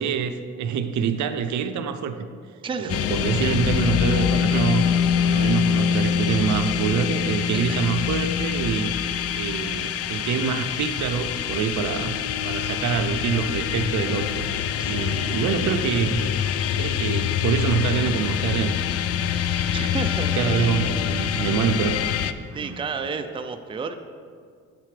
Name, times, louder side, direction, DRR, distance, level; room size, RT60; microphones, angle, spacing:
voice 1, 0.0-2.3 2.8-4.9 5.2-8.9 9.3-12.2 12.4-16.3 16.8-18.8 19.2-19.9 20.4-22.0 22.5-22.8, right 7 dB, 70° right, 9 dB, 0.6 m, -26 dB
voice 2, 2.6-3.0 7.7-7.8 14.8-15.2 19.7-20.7 22.5-23.9, right 5 dB, 15° right, 7 dB, 0.4 m, -31 dB
sound 1, 2.9-22.3, left 8 dB, 55° left, 0.4 m, -25 dB
8.9 x 7.6 x 3.3 m, 2.1 s
cardioid pair, 90°, 30 cm